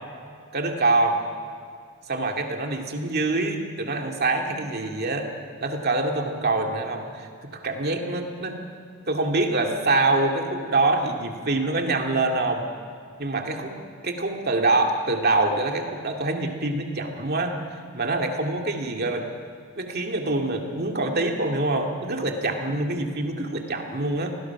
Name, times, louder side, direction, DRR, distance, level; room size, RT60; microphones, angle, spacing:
voice 1, 0.5-1.2 2.1-5.3 5.6-8.6 9.1-12.6 13.2-17.6 17.9-19.3 19.8-24.3, right 2 dB, 45° right, 2 dB, 2.3 m, -25 dB
29.0 x 20.0 x 6.0 m, 2.2 s
head